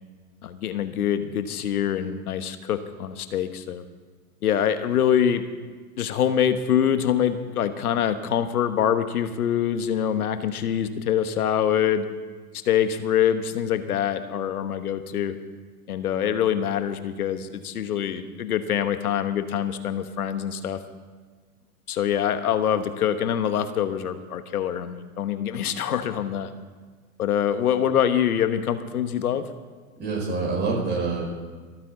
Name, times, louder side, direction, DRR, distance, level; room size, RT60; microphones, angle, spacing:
voice 1, 0.4-3.8 4.4-5.4 6.0-12.1 12.6-15.4 15.9-20.8 21.9-26.5 27.2-29.5, left 9 dB, 75° left, 10 dB, 1.3 m, -24 dB
voice 2, 30.0-31.2, right 4 dB, 25° right, -2 dB, 5.5 m, -26 dB
25.5 x 8.9 x 3.9 m, 1.5 s
hypercardioid pair, 110°, 45 cm